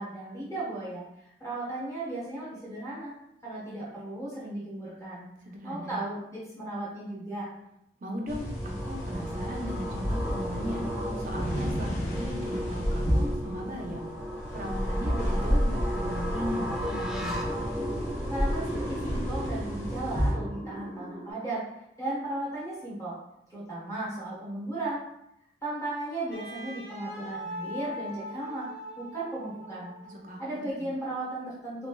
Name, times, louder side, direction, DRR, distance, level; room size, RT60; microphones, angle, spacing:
voice 1, 0.0-3.1 3.4-5.3 5.6-7.5 18.3-21.6 22.0-23.2 23.5-25.0 25.6-28.7 29.0-29.9 30.4-31.9, right 2 dB, 20° left, -9 dB, 1.0 m, -35 dB
voice 2, 5.5-6.0 8.0-10.8 11.2-14.1 14.5-17.5 30.0-30.9, equal, 45° right, 0 dB, 0.6 m, -37 dB
sound 1, 8.2-21.3, equal, 5° right, 0.3 m, -36 dB
sound 2, 8.3-20.3, equal, 40° left, 0.9 m, -31 dB
Wind instrument woodwind instrument, 26.3-30.4, equal, 80° left, 1.3 m, -41 dB
3.2 x 3.2 x 2.2 m, 0.81 s
head